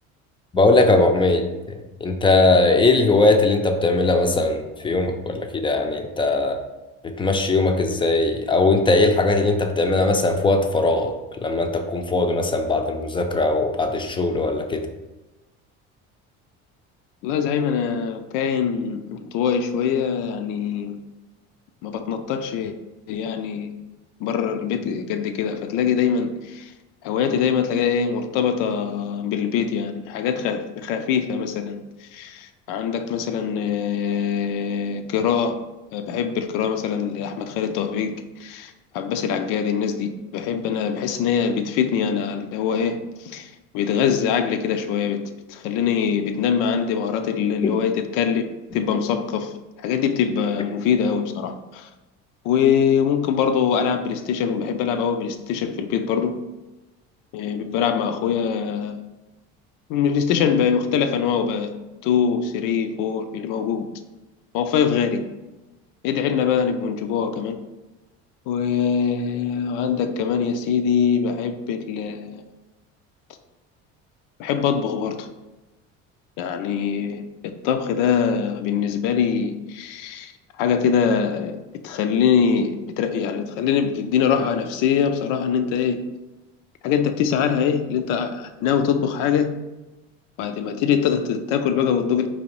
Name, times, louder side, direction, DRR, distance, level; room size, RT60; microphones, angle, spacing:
voice 1, 0.5-6.6 7.0-11.1 11.4-14.8 47.6-47.7, left 2 dB, 15° left, 5 dB, 0.4 m, -20 dB
voice 2, 17.2-21.0 21.8-22.7 23.1-23.7 24.2-26.7 27.0-35.6 35.9-45.2 45.5-48.4 48.7-51.9 52.4-56.4 57.3-59.0 59.9-61.8 62.0-63.9 64.5-65.2 66.0-67.6 68.5-72.4 74.4-75.3 76.4-80.3 80.6-81.6 81.8-86.0 86.8-89.5 90.4-92.3, left 7 dB, 85° left, 8 dB, 0.5 m, -23 dB
4.0 x 2.8 x 3.0 m, 1.1 s
cardioid pair, 105°, 31 cm